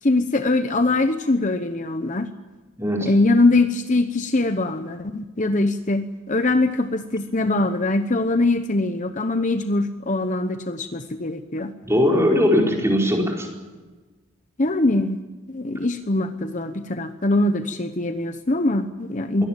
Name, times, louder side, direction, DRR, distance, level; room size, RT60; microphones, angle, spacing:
voice 1, 0.0-2.3 3.0-11.7 14.6-15.2 15.5-19.5, left 2 dB, 35° left, 8 dB, 0.9 m, -22 dB
voice 2, 2.8-3.1 11.8-13.5 19.4-19.5, left 1 dB, 10° right, 0 dB, 4.5 m, -20 dB
23.0 x 18.0 x 9.1 m, 1.3 s
head